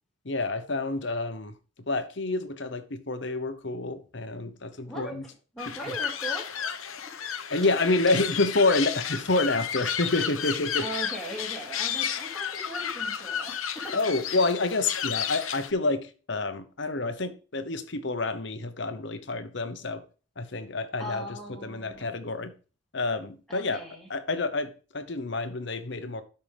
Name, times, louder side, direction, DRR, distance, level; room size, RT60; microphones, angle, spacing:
voice 1, 0.2-1.6 1.9-5.2 5.9-6.0 7.5-10.9 13.9-20.0 20.4-21.2 21.6-22.5 22.9-23.8 24.1-26.2, left 2 dB, 55° left, 1.0 m, -28 dB
voice 2, 4.8-5.2 5.5-7.5 10.8-13.9 21.0-22.1 23.5-24.1, right 1 dB, ahead, 2.7 m, -40 dB
sound 1, 5.6-15.7, left 8 dB, 85° left, 1.0 m, -32 dB
12.5 x 5.8 x 3.6 m
head